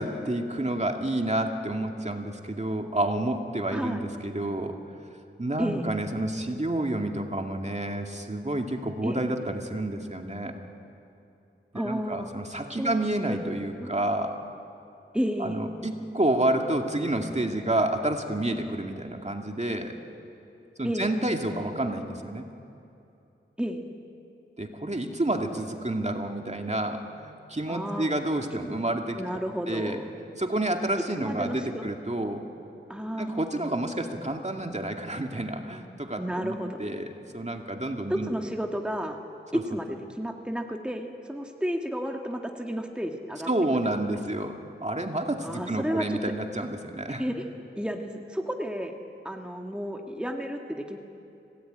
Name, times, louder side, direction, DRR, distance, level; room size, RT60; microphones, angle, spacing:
voice 1, 0.0-4.8 5.4-10.6 11.7-14.4 15.4-20.0 20.8-22.5 24.6-30.0 30.4-32.5 33.2-38.3 39.5-39.6 43.5-47.2, right 1 dB, 35° right, 3 dB, 2.3 m, -29 dB
voice 2, 3.7-4.0 5.6-5.9 9.0-9.2 11.7-12.3 12.8-13.4 13.8-13.9 15.1-15.6 20.8-21.1 23.6-23.9 27.7-28.1 29.2-30.0 31.2-31.8 32.9-33.4 36.2-36.8 38.1-39.2 39.5-43.5 45.4-46.2 47.2-47.4 47.7-48.9 49.2-51.0, equal, 5° right, 3 dB, 1.8 m, -32 dB
25.0 x 18.5 x 9.3 m, 2.7 s
wide cardioid pair, 40°, 21 cm